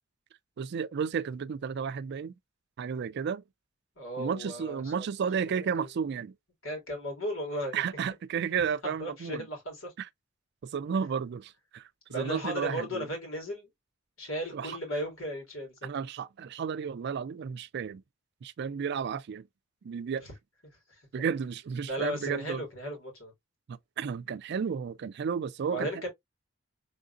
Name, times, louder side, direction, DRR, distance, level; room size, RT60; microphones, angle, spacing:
voice 1, 0.6-2.3 2.8-3.4 4.2-6.3 7.7-9.5 10.0-10.1 10.7-13.1 14.5-14.8 15.8-18.0 18.4-19.4 19.8-20.2 21.1-22.6 23.7-25.9, right 6 dB, 55° right, 0.4 m, -33 dB
voice 2, 4.0-5.1 5.5-5.9 6.6-7.8 8.8-9.9 12.1-13.7 14.2-15.9 20.9-21.0 21.9-23.3 25.6-26.1, equal, 80° left, 2.7 m, -35 dB
3.8 x 3.6 x 2.4 m
head